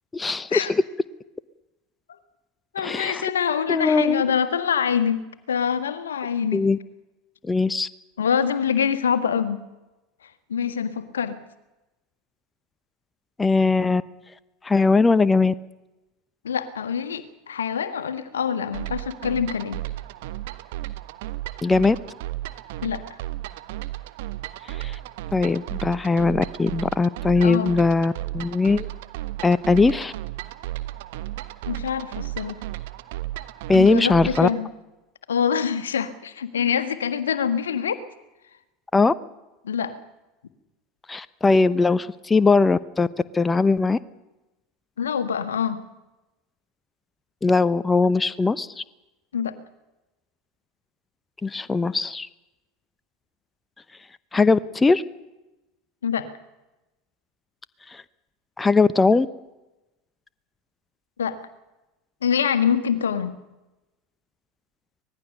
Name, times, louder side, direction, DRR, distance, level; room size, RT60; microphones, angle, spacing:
voice 1, 0.1-0.7 2.8-3.3 3.7-4.2 6.5-6.8 7.4-7.9 13.4-14.0 14.6-15.5 21.6-22.0 24.7-25.0 25.3-28.9 29.4-30.1 33.7-34.5 38.9-39.1 41.1-43.1 43.3-44.0 47.4-48.8 51.4-52.3 54.3-55.0 57.9-58.0 58.6-59.3, left 3 dB, 15° left, 15 dB, 0.8 m, -20 dB
voice 2, 2.7-5.2 5.5-6.6 8.2-9.6 10.2-11.4 16.4-19.8 22.8-23.2 27.4-27.7 31.7-32.6 33.7-34.7 35.3-38.0 39.6-39.9 45.0-45.8 49.3-49.6 56.0-56.3 61.2-61.4 62.2-63.4, left 7 dB, 80° left, 11 dB, 1.5 m, -25 dB
sound 1, 18.7-34.6, right 16 dB, 65° right, 1.3 m, -34 dB
24.5 x 19.5 x 6.6 m, 1.0 s
figure-of-eight pair, 80°, 0 cm